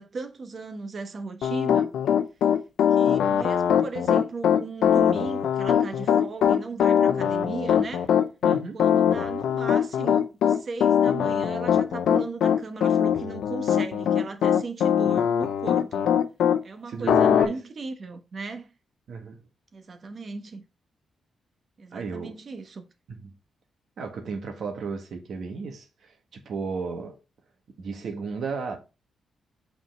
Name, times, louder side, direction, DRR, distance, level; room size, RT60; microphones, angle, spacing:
voice 1, 0.0-1.9 2.9-8.1 8.7-16.0 16.6-18.7 19.7-20.6 21.8-22.8, right 4 dB, 50° right, 1.2 m, -37 dB
Piano, 1.4-16.6 17.1-17.5, left 8 dB, 85° left, 0.6 m, -21 dB
voice 2, 8.4-8.8 16.9-17.6 19.1-19.4 21.9-22.3 23.1-23.3 24.0-27.2 27.8-28.8, right 4 dB, 70° right, 1.7 m, -34 dB
5.7 x 4.4 x 4.6 m
cardioid pair, 70°, 0 cm